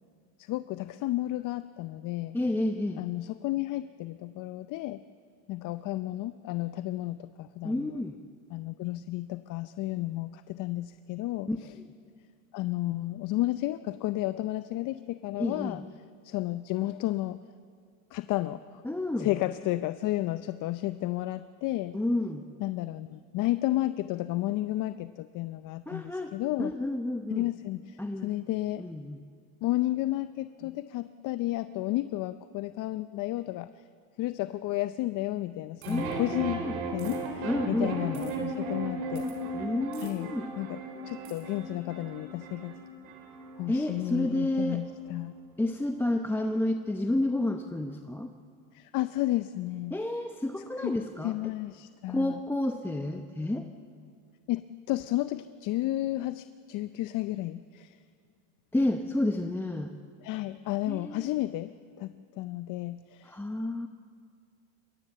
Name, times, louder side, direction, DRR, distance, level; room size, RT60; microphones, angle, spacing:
voice 1, 0.4-2.4 3.0-5.0 5.5-8.0 8.5-11.7 12.5-15.8 16.2-17.4 18.1-18.8 19.2-22.0 22.6-26.7 27.3-28.8 29.6-33.7 34.2-36.6 36.9-39.2 40.0-40.8 41.1-42.8 43.6-45.3 48.7-50.0 50.8-50.9 51.2-52.4 54.5-58.0 60.2-61.7 62.0-63.4, left 16 dB, 50° left, 13 dB, 0.6 m, -32 dB
voice 2, 2.3-3.0 7.6-8.2 11.5-11.6 15.4-15.8 18.8-19.3 21.9-22.5 25.9-26.3 26.6-27.5 28.0-28.3 28.8-29.2 35.8-36.7 37.4-38.2 39.5-40.5 43.7-44.8 45.6-48.3 49.9-51.3 52.1-53.7 58.7-59.9 60.9-61.4 63.2-63.9, left 1 dB, 5° left, 5 dB, 0.7 m, -30 dB
sound 1, 35.8-36.1 37.0-37.2 38.1-38.3 39.1-39.4 39.9-40.1 41.2-41.4, right 9 dB, 65° right, 4.9 m, -51 dB
sound 2, 35.8-46.1, right 2 dB, 80° right, 3.7 m, -37 dB
22.0 x 17.0 x 7.7 m, 2.2 s
supercardioid pair, 110°, 41 cm